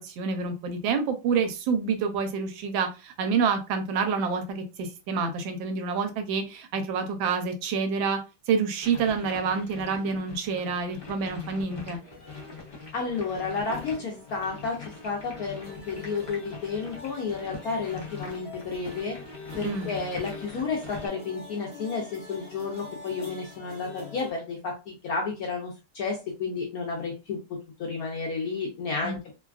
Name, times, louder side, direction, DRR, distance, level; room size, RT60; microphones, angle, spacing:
voice 1, 0.0-8.2 8.5-12.0 19.6-19.9 29.0-29.2, right 5 dB, 80° right, 7 dB, 1.3 m, -28 dB
sound 1, 8.8-21.1, left 4 dB, 90° left, 0.4 m, -43 dB
sound 2, 12.0-24.3, left 3 dB, 45° left, 0.9 m, -46 dB
voice 2, 12.9-19.2 19.6-29.3, left 4 dB, 70° left, 0 dB, 0.9 m, -32 dB
3.2 x 2.3 x 2.3 m, 0.28 s
omnidirectional pair, 2.1 m